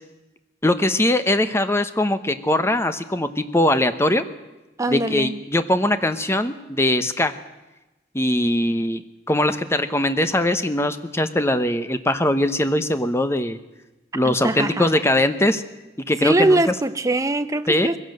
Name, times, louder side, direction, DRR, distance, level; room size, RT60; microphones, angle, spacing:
voice 1, 0.6-4.2 4.9-7.3 8.1-9.0 9.3-13.6 14.1-15.6 16.1-16.6 17.7-17.9, left 1 dB, 15° left, 1.0 m, -21 dB
voice 2, 4.8-5.4 14.2-15.0 16.2-18.0, right 2 dB, 15° right, 0.7 m, -22 dB
21.0 x 16.0 x 7.8 m
head